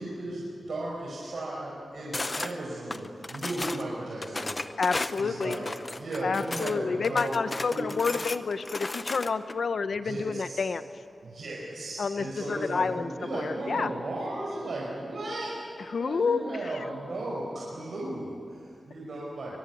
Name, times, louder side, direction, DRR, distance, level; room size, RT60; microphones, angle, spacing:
voice 1, 0.0-4.8 5.2-5.7 6.0-7.4 7.7-7.9 10.0-10.6 11.2-19.6, right 1 dB, 60° right, -4 dB, 5.0 m, -35 dB
sound 1, 2.1-2.5 2.9-3.8 4.2-6.8 7.0-9.5, left 2 dB, 25° left, 0.8 m, -34 dB
voice 2, 4.8-5.7 6.2-10.8 12.0-13.9 15.9-16.8, left 5 dB, 55° left, 11 dB, 1.0 m, -29 dB
23.0 x 22.5 x 9.3 m, 2.6 s
wide cardioid pair, 180°, 0 cm